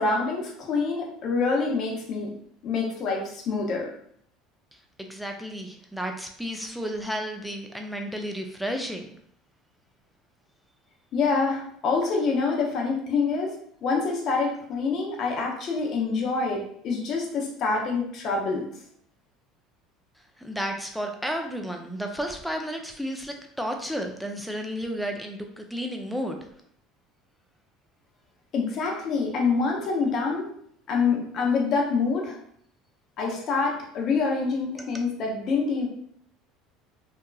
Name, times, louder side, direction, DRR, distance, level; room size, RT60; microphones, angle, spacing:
voice 1, 0.0-2.3 2.6-3.9 11.1-13.6 13.8-18.7 28.5-30.5 30.9-32.4 33.2-35.9, left 4 dB, 50° left, 0 dB, 0.7 m, -26 dB
voice 2, 5.0-9.0 20.4-26.4, equal, ahead, 3 dB, 0.4 m, -32 dB
2.8 x 2.5 x 2.3 m, 0.66 s
supercardioid pair, 120°, 0 cm